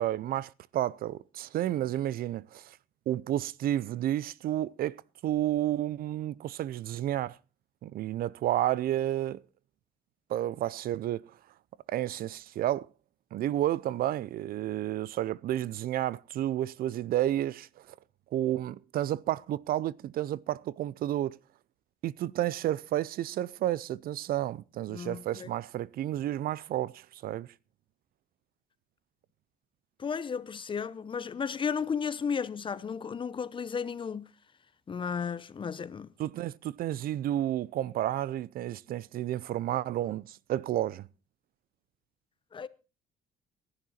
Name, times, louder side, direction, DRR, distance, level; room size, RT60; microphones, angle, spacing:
voice 1, 0.0-2.8 3.1-7.4 7.8-9.4 10.3-11.2 11.9-12.9 13.3-17.9 18.3-21.4 22.0-27.5 36.2-41.1, right 13 dB, 60° right, 0.6 m, -31 dB
voice 2, 24.9-25.5 30.0-34.3 34.9-36.1 42.5-42.7, left 6 dB, 30° left, 0.8 m, -34 dB
15.5 x 11.0 x 4.3 m
cardioid pair, 110°, 17 cm